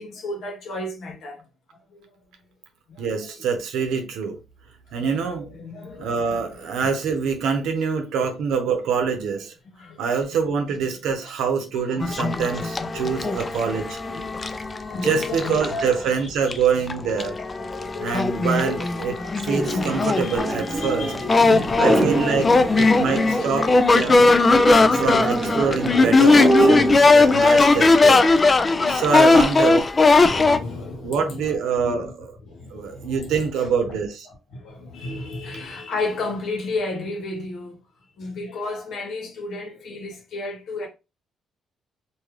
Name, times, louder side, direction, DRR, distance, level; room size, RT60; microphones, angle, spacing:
voice 1, 0.0-1.4 1.9-2.0 2.9-3.3 4.9-6.7 8.2-8.3 9.7-10.0 10.9-11.0 11.6-13.6 14.1-16.6 17.2-18.8 19.1-20.4 20.8-23.7 26.3-26.5 28.3-29.3 30.2-32.1 32.4-34.0 34.3-37.8 38.2-40.9, left 3 dB, 70° left, 1.2 m, -34 dB
voice 2, 3.0-4.4 4.9-5.5 6.0-9.5 10.0-14.0 15.0-17.4 18.0-21.1 21.8-24.3 24.8-28.3 28.9-29.9 31.0-32.3 32.7-34.3, right 6 dB, 85° right, 0.7 m, -25 dB
sound 1, 12.0-15.9 16.5-16.6 16.9-30.6, left 3 dB, 30° left, 0.4 m, -19 dB
sound 2, 19.5-27.1, right 2 dB, 15° right, 0.8 m, -25 dB
2.7 x 2.4 x 3.1 m
cardioid pair, 90°, 0 cm